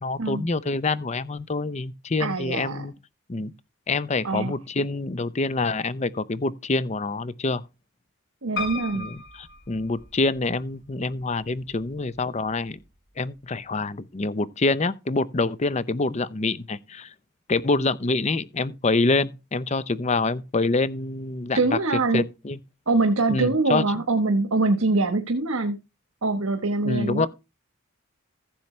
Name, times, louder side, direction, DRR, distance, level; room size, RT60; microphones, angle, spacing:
voice 1, 0.0-2.9 3.3-3.5 3.9-7.6 8.9-12.8 13.2-17.1 17.5-21.6 22.1-22.6 23.3-23.9 26.8-27.3, left 3 dB, 30° left, 0.6 m, -26 dB
voice 2, 2.2-2.8 4.2-4.5 8.4-9.1 21.5-22.3 22.9-25.8 26.2-27.3, right 3 dB, 85° right, 1.2 m, -23 dB
Piano, 8.6-10.5 11.2-11.9 12.2-12.3 12.5-12.6, left 3 dB, 55° left, 5.8 m, -35 dB
14.5 x 7.2 x 3.2 m
head